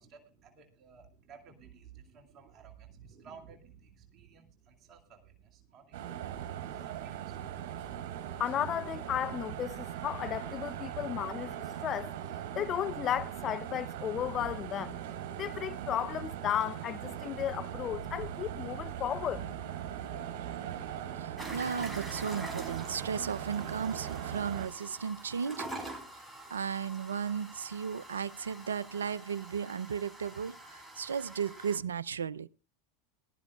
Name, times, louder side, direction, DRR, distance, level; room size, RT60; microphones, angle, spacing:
voice 1, 0.0-7.4, right 6 dB, 40° right, 2.4 m, -55 dB
sound 1, 5.9-24.7, right 10 dB, 60° right, 3.5 m, -40 dB
voice 2, 8.4-12.2 12.5-15.0 15.4-19.5, left 10 dB, 35° left, 0.7 m, -34 dB
Wind instrument woodwind instrument, 18.5-23.4, left 3 dB, 75° left, 7.5 m, -56 dB
voice 3, 21.2-25.7 26.5-32.5, right 7 dB, 90° right, 0.6 m, -35 dB
sound 2, 21.4-31.8, right 1 dB, 5° right, 5.0 m, -46 dB
20.0 x 12.5 x 2.4 m
hypercardioid pair, 95°, 0 cm